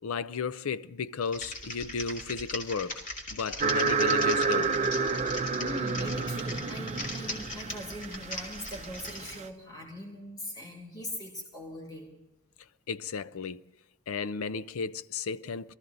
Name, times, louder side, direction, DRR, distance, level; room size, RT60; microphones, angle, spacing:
voice 1, 0.0-3.0 3.3-4.7 12.9-13.6 14.1-15.7, left 5 dB, 65° left, 0.5 m, -34 dB
Typing, 1.2-9.4, left 1 dB, 35° left, 2.5 m, -39 dB
sound 1, 3.6-9.4, right 4 dB, 30° right, 0.5 m, -29 dB
voice 2, 5.6-12.2, left 1 dB, 20° left, 2.3 m, -41 dB
22.5 x 14.0 x 4.0 m
head